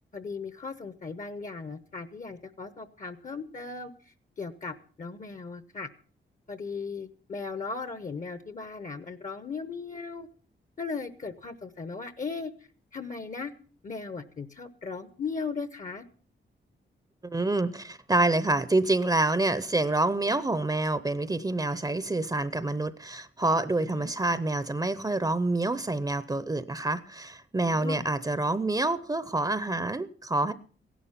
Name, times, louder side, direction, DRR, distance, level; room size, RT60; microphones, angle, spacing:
voice 1, 0.1-5.9 6.5-10.3 10.8-12.5 12.9-13.5 13.8-16.0 23.8-24.1 27.7-28.1, left 4 dB, 40° left, 0.9 m, -37 dB
voice 2, 17.3-30.5, right 2 dB, 20° right, 0.7 m, -27 dB
16.0 x 11.0 x 5.7 m
wide cardioid pair, 115°, 19 cm